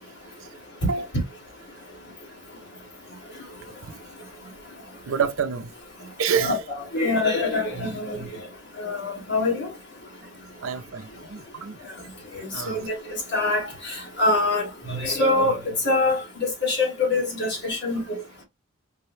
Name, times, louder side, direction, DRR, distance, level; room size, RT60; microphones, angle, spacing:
voice 1, 5.0-5.7 6.2-6.6 10.6-11.8 12.5-12.9, right 6 dB, 75° right, 0.6 m, -27 dB
voice 2, 6.4-8.2 8.8-9.7 12.4-12.9 13.3-18.0, left 2 dB, 55° left, 1.9 m, -24 dB
4.7 x 2.2 x 3.1 m
head